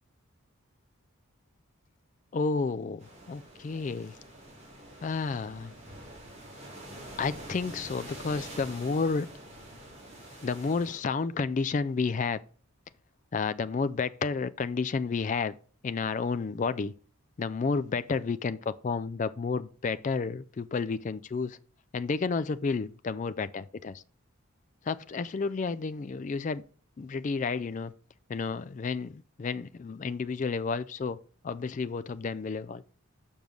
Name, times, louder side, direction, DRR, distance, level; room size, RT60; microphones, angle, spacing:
voice 1, 2.3-4.2 5.0-5.7 7.2-9.3 10.4-12.4 13.3-15.5 15.8-16.9 17.4-21.6 21.9-24.0 24.9-26.6 27.0-27.9 28.3-31.2 31.4-32.8, left 4 dB, 35° left, 0.3 m, -31 dB
sound 1, 3.0-11.0, right 1 dB, 30° right, 3.0 m, -46 dB
7.1 x 5.3 x 6.2 m
head